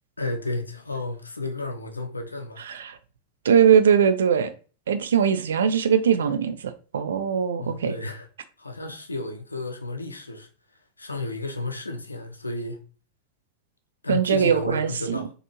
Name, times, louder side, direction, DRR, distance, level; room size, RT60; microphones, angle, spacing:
voice 1, 0.2-2.6 7.6-8.3 8.6-10.5 11.0-12.8 14.0-15.3, left 2 dB, 80° left, 0.5 m, -32 dB
voice 2, 2.7-3.0 3.4-4.5 4.9-6.6 6.9-7.9 14.1-15.2, right 7 dB, 65° right, 0.4 m, -20 dB
4.1 x 2.5 x 2.9 m
figure-of-eight pair, 90°, 0 cm